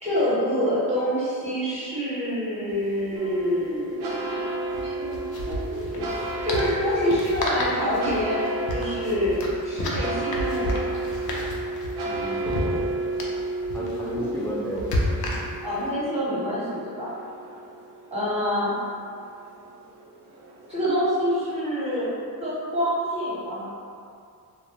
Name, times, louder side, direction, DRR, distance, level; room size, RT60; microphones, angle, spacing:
voice 1, 0.0-4.4 4.7-5.2 5.5-8.4 8.7-10.8 15.6-17.1 18.1-18.7 20.7-22.1 22.4-23.7, equal, 15° right, -11 dB, 0.9 m, -26 dB
sound 1, 2.7-2.8 3.0-3.2 4.6-15.8, left 1 dB, 65° left, 0.5 m, -32 dB
sound 2, 3.2-20.7, right 2 dB, 85° right, 0.5 m, -32 dB
voice 2, 12.0-12.9 13.7-15.5, equal, 5° left, -6 dB, 0.4 m, -33 dB
2.3 x 2.0 x 2.8 m, 2.4 s
cardioid pair, 80°, 39 cm